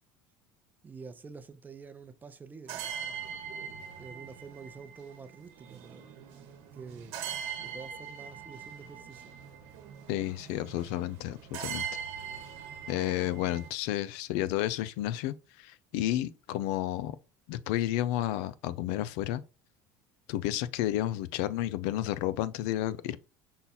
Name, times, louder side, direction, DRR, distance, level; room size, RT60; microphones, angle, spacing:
voice 1, 0.8-3.4 4.0-6.5 6.7-7.2 7.6-9.4, right 5 dB, 20° right, 0.6 m, -48 dB
sound 1, 2.7-13.7, right 8 dB, 70° right, 1.0 m, -42 dB
voice 2, 10.1-11.9 12.9-17.2 17.5-19.4 20.3-23.2, left 13 dB, 75° left, 0.4 m, -31 dB
5.5 x 2.3 x 4.1 m
supercardioid pair, 115°, 9 cm